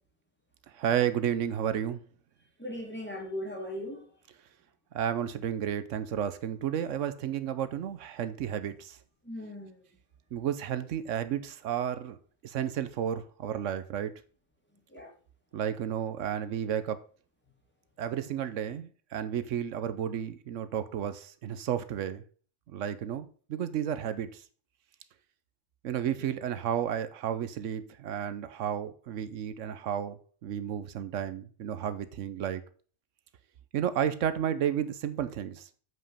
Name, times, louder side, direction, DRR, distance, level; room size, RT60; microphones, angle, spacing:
voice 1, 0.7-2.0 4.9-9.0 10.3-12.2 12.4-14.1 15.5-17.0 18.0-22.2 22.7-24.4 25.8-32.6 33.7-35.7, right 9 dB, 85° right, 12 dB, 1.0 m, -32 dB
voice 2, 2.6-4.0 9.2-9.8 14.9-15.1, left 1 dB, 10° left, 0 dB, 2.3 m, -38 dB
7.9 x 5.2 x 5.5 m, 0.41 s
omnidirectional pair, 1.3 m